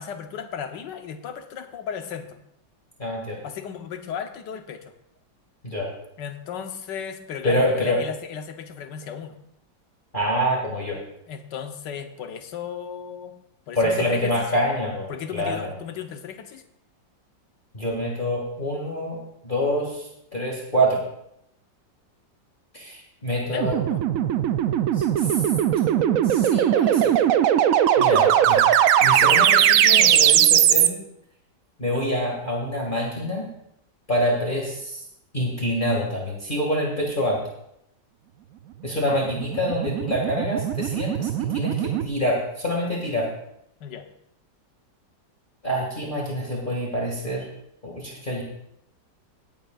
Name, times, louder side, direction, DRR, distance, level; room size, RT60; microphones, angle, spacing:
voice 1, 0.0-2.4 3.4-4.9 6.2-9.4 11.2-13.3 13.7-14.5 15.1-16.6 23.3-24.1 43.8-44.1, left 7 dB, 70° left, 6 dB, 1.6 m, -35 dB
voice 2, 3.0-3.4 5.6-5.9 7.4-8.0 10.1-11.0 13.7-15.7 17.7-19.2 19.4-21.0 22.7-23.8 24.9-25.4 25.9-27.2 28.0-28.6 29.0-31.0 31.8-33.5 34.1-35.0 35.3-37.4 38.8-43.3 45.6-47.4 47.8-48.4, equal, 25° left, -3 dB, 2.2 m, -26 dB
sound 1, 23.6-30.9 39.1-42.1, right 10 dB, 80° right, 0.7 m, -19 dB
18.5 x 9.1 x 2.4 m, 0.76 s
omnidirectional pair, 2.0 m